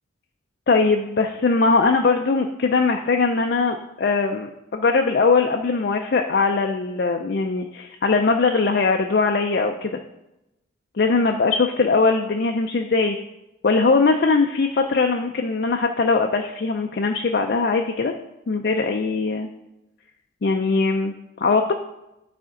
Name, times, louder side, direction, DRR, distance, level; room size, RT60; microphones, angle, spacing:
voice 1, 0.7-10.0 11.0-13.2 13.6-18.1 18.5-19.5 20.4-21.1 21.4-21.7, left 4 dB, 55° left, 3 dB, 0.4 m, -20 dB
11.5 x 4.2 x 3.8 m, 0.94 s
head